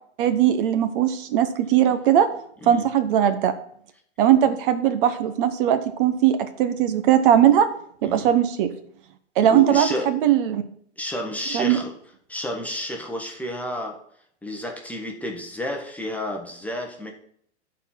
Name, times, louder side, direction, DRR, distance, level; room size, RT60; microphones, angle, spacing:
voice 1, 0.2-2.3 2.7-3.5 4.2-7.7 8.0-8.7 9.4-10.6 11.5-11.8, right 10 dB, 45° right, 10 dB, 0.9 m, -19 dB
voice 2, 9.5-10.1 11.0-11.9 12.3-14.0 14.4-17.1, left 1 dB, 5° left, 1 dB, 1.0 m, -31 dB
11.5 x 4.3 x 5.7 m, 0.64 s
hypercardioid pair, 135°, 36 cm